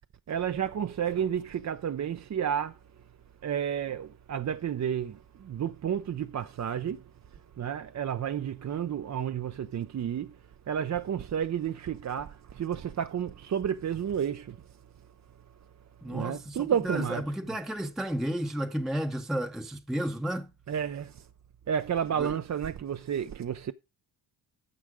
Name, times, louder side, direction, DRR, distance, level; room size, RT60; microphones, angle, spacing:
voice 1, 0.3-2.8 3.4-7.0 7.6-10.4 10.7-14.6 16.0-17.6 20.7-21.3 21.7-23.7, right 8 dB, 40° right, 0.5 m, -31 dB
voice 2, 16.0-20.5 22.2-22.4, right 1 dB, ahead, 0.7 m, -32 dB
9.9 x 6.4 x 4.7 m
cardioid pair, 85°, 46 cm